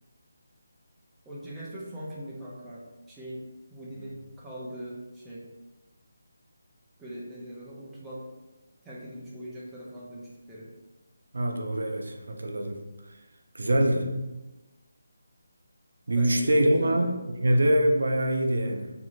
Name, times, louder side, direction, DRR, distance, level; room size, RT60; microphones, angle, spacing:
voice 1, 1.3-3.4 3.7-5.5 7.0-8.2 8.8-10.7 16.1-17.1, right 1 dB, 5° right, -9 dB, 0.4 m, -41 dB
voice 2, 11.3-12.8 13.5-14.1 16.1-18.9, right 1 dB, 75° right, 3 dB, 0.4 m, -24 dB
2.6 x 2.5 x 3.0 m, 1.1 s
figure-of-eight pair, 170°, 0 cm